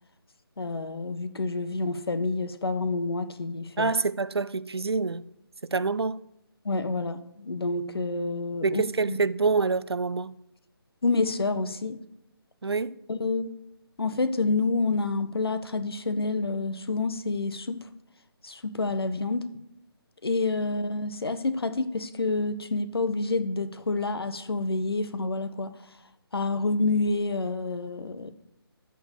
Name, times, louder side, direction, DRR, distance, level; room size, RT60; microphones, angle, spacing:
voice 1, 0.6-3.9 6.6-9.2 11.0-12.0 13.1-13.5 14.0-17.9 18.4-19.4 20.2-25.8 26.3-28.3, left 3 dB, 70° left, 1.1 m, -28 dB
voice 2, 3.8-5.2 5.6-6.2 8.6-10.4 12.6-13.0, right 4 dB, 80° right, 0.6 m, -26 dB
13.5 x 4.7 x 8.0 m
figure-of-eight pair, 155°, 13 cm